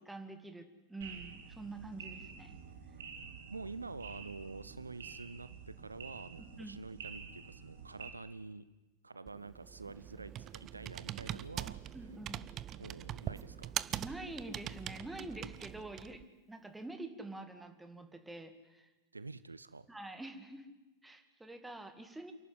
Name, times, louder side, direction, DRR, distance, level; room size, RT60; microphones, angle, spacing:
voice 1, 0.0-2.6 6.4-6.8 11.9-12.4 14.0-16.2 16.5-18.9 19.9-20.7 21.0-22.3, right 2 dB, 5° right, 8 dB, 2.2 m, -46 dB
sound 1, 1.0-8.1, right 6 dB, 60° right, 2.7 m, -49 dB
voice 2, 3.5-8.6 9.0-11.8 12.8-13.7 19.1-19.9, right 3 dB, 80° right, 15 dB, 0.7 m, -47 dB
Computer keyboard, 9.3-16.2, right 12 dB, 30° right, 0.6 m, -43 dB
28.0 x 12.0 x 9.4 m, 1.1 s
figure-of-eight pair, 90°, 0 cm